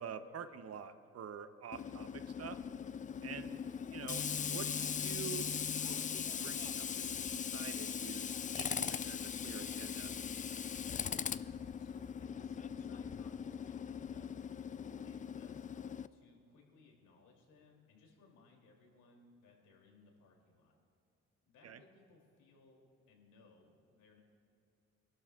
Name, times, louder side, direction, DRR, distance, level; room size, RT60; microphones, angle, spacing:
voice 1, 0.0-2.6 3.2-3.6 3.9-10.1 21.6-21.8, right 7 dB, 55° right, 10 dB, 0.8 m, -48 dB
Tools, 1.7-16.1, left 7 dB, 25° left, 0.3 m, -40 dB
voice 2, 11.7-14.3 15.0-20.8 21.5-24.2, left 4 dB, 85° left, 0 dB, 3.0 m, -64 dB
28.0 x 12.0 x 2.4 m, 2.7 s
cardioid pair, 90°, 30 cm